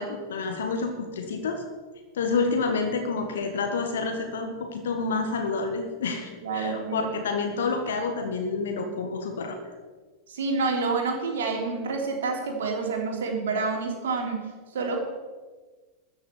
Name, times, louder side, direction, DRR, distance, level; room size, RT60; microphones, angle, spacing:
voice 1, 0.0-1.6 2.1-9.7, left 4 dB, 60° left, 4 dB, 1.7 m, -29 dB
voice 2, 6.4-7.1 10.3-14.4 14.7-15.0, right 4 dB, 60° right, 1 dB, 3.3 m, -28 dB
13.5 x 6.8 x 8.3 m, 1.4 s
figure-of-eight pair, 90°, 0 cm